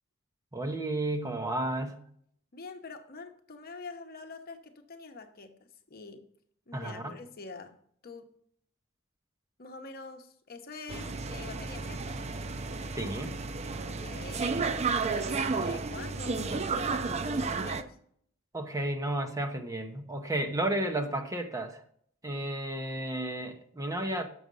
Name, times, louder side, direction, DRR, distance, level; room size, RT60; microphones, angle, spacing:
voice 1, 0.5-2.0 6.7-7.1 12.9-13.3 18.5-21.8 22.2-24.3, right 1 dB, 15° right, 5 dB, 0.9 m, -32 dB
voice 2, 2.5-5.5 5.9-6.3 6.7-7.8 8.0-8.3 9.6-12.2 13.9-14.5 15.1-18.0, left 4 dB, 50° left, 6 dB, 0.9 m, -45 dB
sound 1, 10.9-17.8, right 4 dB, 35° right, 0.5 m, -32 dB
7.7 x 6.3 x 5.4 m, 0.63 s
head